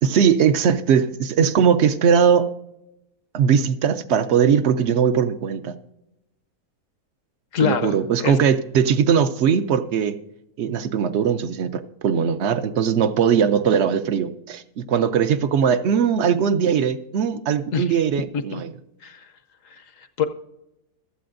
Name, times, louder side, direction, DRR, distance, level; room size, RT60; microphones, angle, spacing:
voice 1, 0.0-2.5 3.3-5.7 7.6-10.2 10.6-18.7, right 7 dB, 60° right, 12 dB, 0.8 m, -20 dB
voice 2, 7.5-8.4 17.7-18.0 18.3-18.6 19.0-19.3 19.6-20.3, left 6 dB, 70° left, 10 dB, 1.1 m, -26 dB
15.5 x 12.5 x 2.6 m, 0.89 s
omnidirectional pair, 1.5 m